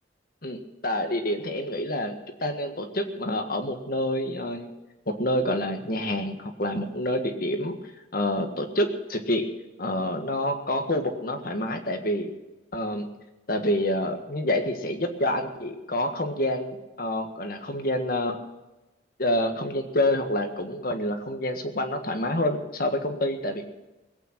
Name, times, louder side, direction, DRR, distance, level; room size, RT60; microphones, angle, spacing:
voice 1, 0.4-4.7 5.1-7.8 8.1-9.5 9.8-12.3 12.7-13.0 13.5-18.4 19.2-23.6, left 1 dB, 50° left, 5 dB, 1.7 m, -27 dB
20.5 x 9.1 x 6.0 m, 1.0 s
head